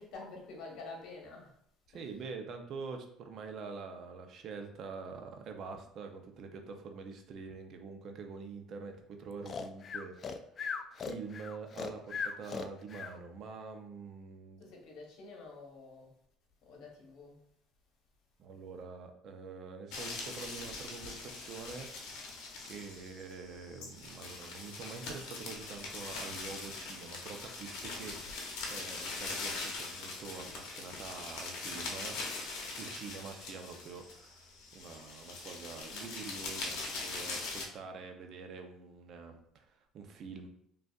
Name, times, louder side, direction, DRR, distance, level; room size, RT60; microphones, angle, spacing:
voice 1, 0.0-1.6 1.9-2.0 14.6-16.1 16.6-17.4, left 3 dB, 70° left, 0 dB, 1.1 m, -48 dB
voice 2, 1.9-10.2 11.0-14.6 18.4-22.2 22.6-32.2 32.8-40.5, right 5 dB, 55° right, 5 dB, 0.5 m, -46 dB
Breathing, 9.4-13.1, left 5 dB, 40° left, 0.3 m, -38 dB
sound 1, 19.9-37.6, left 3 dB, 85° left, 0.8 m, -42 dB
5.1 x 2.4 x 2.4 m, 0.69 s
cardioid pair, 115°, 0 cm